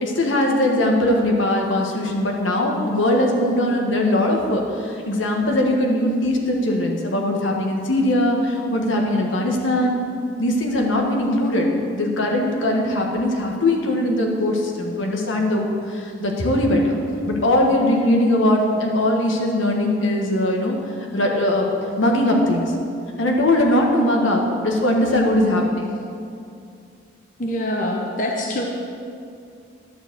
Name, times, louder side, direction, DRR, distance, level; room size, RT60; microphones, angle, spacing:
voice 1, 0.0-10.0 10.4-15.7 15.9-16.9 17.3-20.8 21.1-21.7 22.0-22.7 23.2-25.9, left 1 dB, 80° left, 1 dB, 1.4 m, -20 dB
voice 2, 27.4-28.6, left 1 dB, 40° left, 0 dB, 0.8 m, -24 dB
11.0 x 4.8 x 7.8 m, 2.5 s
head